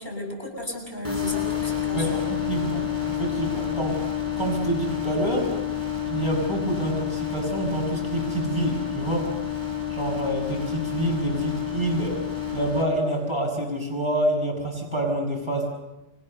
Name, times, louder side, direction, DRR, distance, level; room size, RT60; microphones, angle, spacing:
voice 1, 0.0-2.2, left 1 dB, 45° left, 2 dB, 7.7 m, -34 dB
sound 1, 1.0-12.8, left 9 dB, 15° left, 5.4 m, -29 dB
voice 2, 1.9-4.0 4.4-5.5 6.0-9.3 9.9-12.2 12.5-15.7, right 1 dB, 25° right, 0 dB, 6.9 m, -27 dB
29.5 x 24.5 x 6.8 m, 0.98 s
omnidirectional pair, 1.2 m